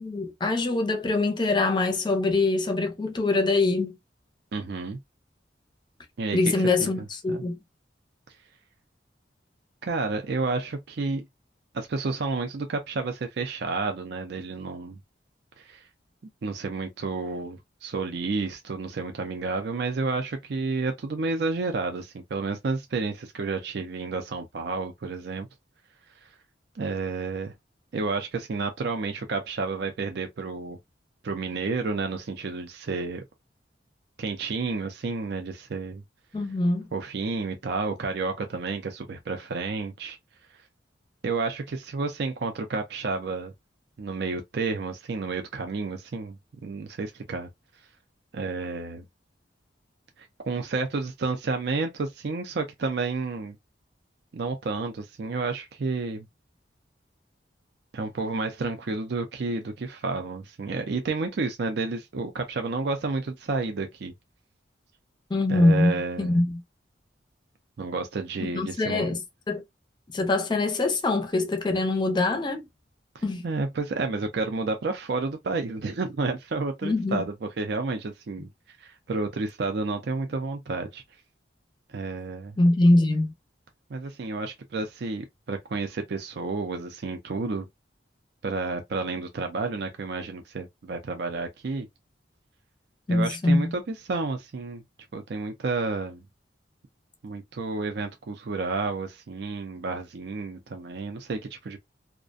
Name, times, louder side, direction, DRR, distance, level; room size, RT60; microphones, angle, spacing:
voice 1, 0.0-4.0 6.3-7.6 36.3-36.9 65.3-66.6 68.4-69.6 70.1-72.7 73.2-73.4 76.8-77.3 82.6-83.3 93.1-93.7, left 2 dB, 25° left, 0.5 m, -23 dB
voice 2, 4.5-5.0 6.2-7.5 9.8-11.3 11.7-15.0 15.6-15.9 16.4-25.5 26.2-26.3 26.7-27.5 27.9-30.8 31.2-33.2 34.2-36.0 36.9-40.2 41.2-43.5 44.0-47.5 48.3-49.0 50.2-53.6 54.3-56.3 57.9-64.1 65.5-66.4 67.8-69.2 73.1-81.0 81.9-82.6 83.9-87.7 88.4-91.9 93.1-94.8 95.1-96.2 97.2-101.8, right 3 dB, 60° right, 0.4 m, -31 dB
2.4 x 2.1 x 2.4 m
head